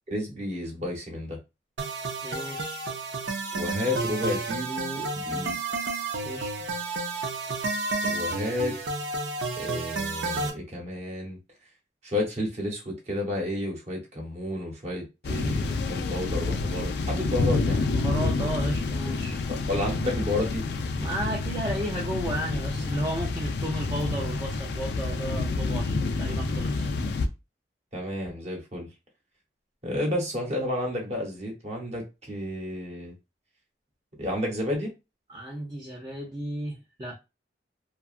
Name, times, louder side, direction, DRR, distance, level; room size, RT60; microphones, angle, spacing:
voice 1, 0.1-1.4 3.5-5.6 8.0-8.8 9.6-11.4 12.0-17.8 19.5-20.6 27.9-28.9 29.8-33.1 34.2-34.9, left 1 dB, 35° right, 0.9 m, -31 dB
sound 1, 1.8-10.5, right 3 dB, 80° right, 0.5 m, -31 dB
voice 2, 2.2-2.8 6.2-6.7 17.8-19.4 21.0-26.9 35.3-37.1, right 1 dB, 20° right, 0.4 m, -34 dB
sound 2, 15.2-27.3, left 3 dB, 65° left, 0.3 m, -28 dB
2.7 x 2.3 x 2.4 m
head